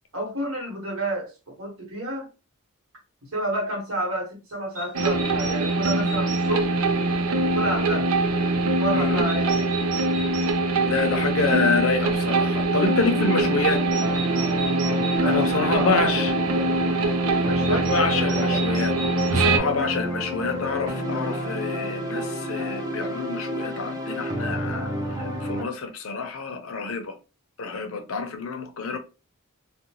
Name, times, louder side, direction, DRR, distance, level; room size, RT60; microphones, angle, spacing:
voice 1, 0.1-2.3 3.3-6.8 7.4-8.1 8.8-9.7 15.1-16.2 16.5-16.7 17.4-18.6 19.8-20.3, right 1 dB, 70° right, 1.3 m, -30 dB
sound 1, 4.7-6.4 9.3-10.5 13.7-15.2 17.6-19.3, right 4 dB, 40° right, 0.9 m, -36 dB
sound 2, 4.9-19.6, right 2 dB, 85° right, 0.4 m, -23 dB
voice 2, 8.9-9.3 10.9-13.8 15.2-16.3 17.7-19.0 19.3-24.9 25.2-27.1 27.6-29.0, left 4 dB, 70° left, 0.6 m, -27 dB
sound 3, 12.8-25.6, equal, 20° right, 0.5 m, -30 dB
2.6 x 2.1 x 2.9 m
head